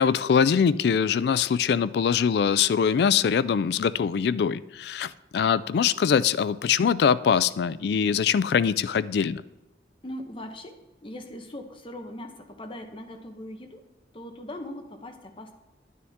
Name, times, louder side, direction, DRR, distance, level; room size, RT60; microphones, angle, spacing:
voice 1, 0.0-9.4, left 7 dB, 60° left, 18 dB, 0.3 m, -23 dB
voice 2, 10.0-13.8 14.1-15.5, left 1 dB, 30° left, 5 dB, 1.0 m, -40 dB
11.0 x 9.5 x 3.6 m, 0.99 s
head